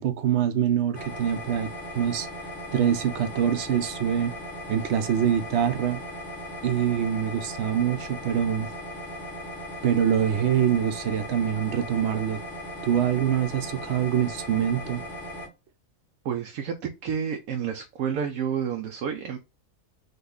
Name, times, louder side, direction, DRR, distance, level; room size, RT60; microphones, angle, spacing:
voice 1, 0.0-2.3 2.7-4.3 4.7-6.0 6.6-8.7 9.8-12.4 12.8-15.0, right 9 dB, 60° right, 0.9 m, -25 dB
sound 1, 0.9-15.5, equal, 40° left, 1.6 m, -38 dB
voice 2, 16.2-19.4, right 7 dB, 80° right, 1.1 m, -30 dB
5.3 x 2.5 x 3.9 m
omnidirectional pair, 1.4 m